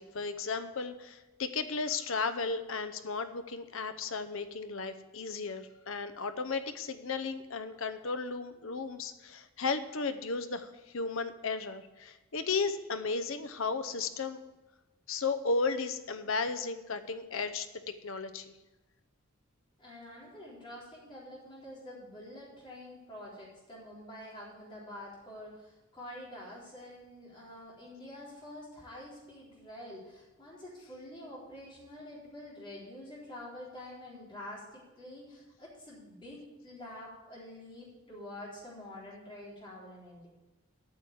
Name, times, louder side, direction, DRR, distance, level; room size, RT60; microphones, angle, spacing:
voice 1, 0.0-14.4 15.1-18.5, left 4 dB, 70° left, 10 dB, 0.8 m, -34 dB
voice 2, 19.8-40.3, left 1 dB, 25° left, -6 dB, 4.1 m, -47 dB
8.9 x 6.4 x 8.6 m, 1.1 s
head